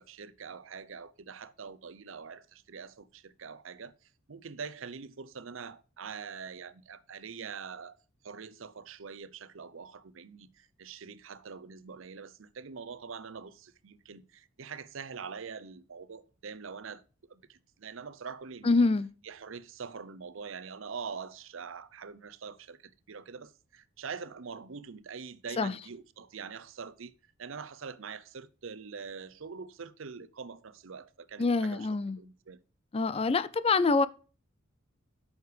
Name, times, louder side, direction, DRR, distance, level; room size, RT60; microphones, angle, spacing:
voice 1, 0.0-8.0 8.2-17.0 17.3-18.9 19.2-27.1 27.4-31.9 32.2-32.6, right 5 dB, 70° right, 0.6 m, -44 dB
voice 2, 18.6-19.1 25.6-25.7 31.4-32.2 32.9-34.1, left 3 dB, 30° left, 0.4 m, -25 dB
9.4 x 6.5 x 3.2 m
head